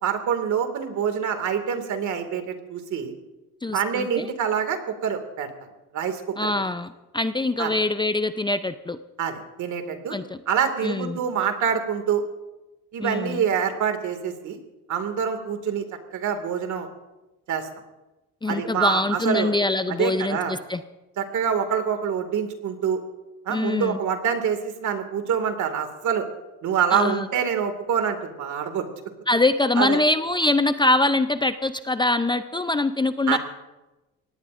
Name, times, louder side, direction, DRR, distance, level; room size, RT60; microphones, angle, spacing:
voice 1, 0.0-3.1 3.7-5.5 5.9-6.5 7.6-7.8 9.2-10.1 10.5-12.2 12.9-14.6 14.9-15.8 16.1-16.9 17.5-17.7 18.5-19.5 19.9-20.6 21.2-23.0 23.5-26.3 26.6-28.9 29.8-30.0 33.3-33.4, right 7 dB, 60° right, 7 dB, 2.2 m, -26 dB
voice 2, 3.6-4.3 6.4-9.0 10.1-10.4 10.8-11.2 13.0-13.4 18.4-20.8 23.5-24.0 26.9-27.3 29.3-33.4, left 2 dB, 15° left, 10 dB, 0.6 m, -24 dB
23.5 x 17.5 x 2.6 m, 1.1 s
cardioid pair, 90°, 33 cm